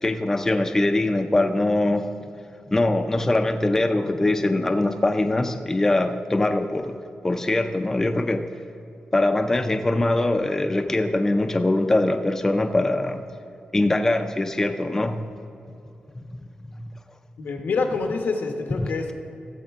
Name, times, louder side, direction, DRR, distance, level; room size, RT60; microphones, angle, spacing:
voice 1, 0.0-2.1 2.7-7.0 7.2-8.5 9.1-13.2 13.7-15.2 16.2-16.9 18.8-18.9, left 2 dB, 15° left, 6 dB, 0.4 m, -22 dB
voice 2, 17.4-19.1, left 4 dB, 85° left, 4 dB, 1.0 m, -26 dB
15.0 x 7.3 x 3.5 m, 2.7 s
wide cardioid pair, 165°, 3 cm